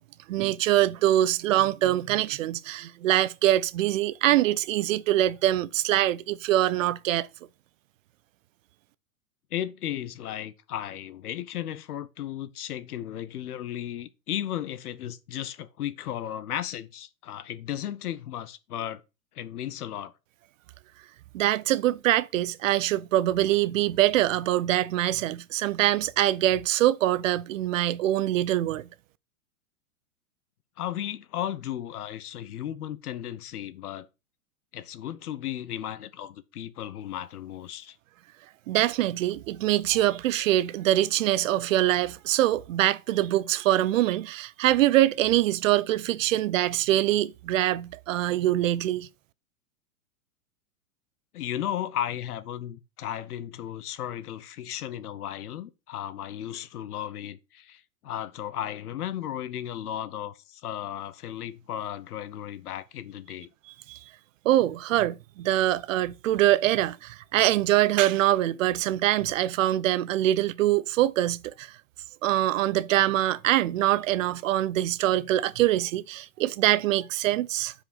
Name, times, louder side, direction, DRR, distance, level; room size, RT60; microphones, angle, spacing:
voice 1, 0.3-7.3 21.3-28.9 38.7-49.1 63.9-64.0 64.4-71.7 72.2-77.7, right 14 dB, 60° right, 0.6 m, -24 dB
voice 2, 9.5-19.0 19.3-20.1 30.8-34.1 34.7-38.0 51.3-63.5, left 11 dB, 85° left, 1.0 m, -35 dB
5.9 x 5.0 x 6.4 m
supercardioid pair, 155°, 44 cm